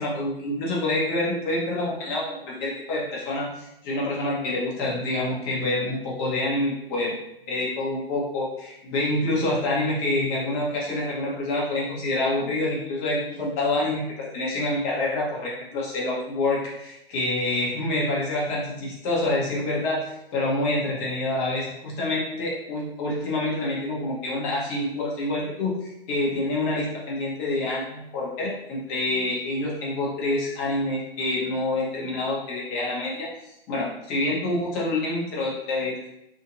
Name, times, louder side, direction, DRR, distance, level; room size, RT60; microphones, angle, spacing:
voice 1, 0.0-7.2 7.5-20.0 20.3-33.3 33.7-36.1, left 2 dB, 25° left, -5 dB, 1.0 m, -27 dB
3.5 x 2.6 x 2.6 m, 0.85 s
figure-of-eight pair, 120°, 30 cm